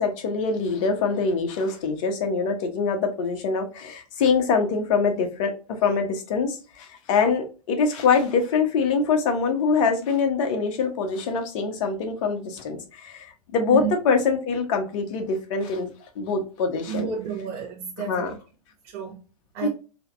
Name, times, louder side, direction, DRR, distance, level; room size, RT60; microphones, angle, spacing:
voice 1, 0.0-5.5 5.8-15.9 16.1-17.1 18.0-18.3 19.6-19.7, left 5 dB, 55° left, 1.2 m, -24 dB
voice 2, 16.9-18.4 18.8-19.2 19.5-19.7, right 8 dB, 45° right, 1.1 m, -31 dB
4.0 x 3.0 x 2.6 m
hypercardioid pair, 105°, 20 cm